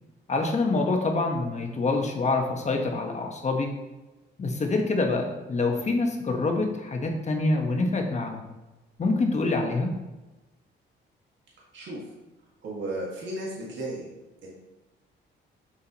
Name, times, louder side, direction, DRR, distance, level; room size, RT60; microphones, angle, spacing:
voice 1, 0.3-3.7 4.4-8.5 9.0-9.9, left 3 dB, 35° left, 2 dB, 1.3 m, -26 dB
voice 2, 12.6-14.1 14.4-14.5, right 1 dB, 70° right, -5 dB, 2.0 m, -34 dB
7.0 x 6.3 x 3.0 m, 1.1 s
cardioid pair, 90°, 20 cm